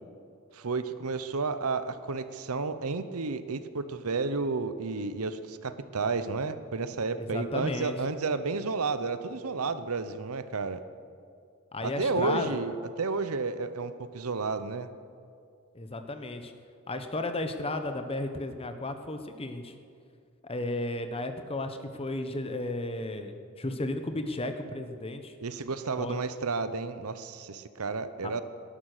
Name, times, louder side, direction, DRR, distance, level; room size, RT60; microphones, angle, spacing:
voice 1, 0.5-10.8 11.8-14.9 25.4-28.4, right 4 dB, 75° right, 12 dB, 0.8 m, -31 dB
voice 2, 7.2-8.0 11.7-12.6 15.7-16.5 16.9-19.7 20.4-25.4 26.0-26.2 28.2-28.4, left 2 dB, 25° left, 8 dB, 1.0 m, -34 dB
18.5 x 11.5 x 6.7 m, 2.3 s
head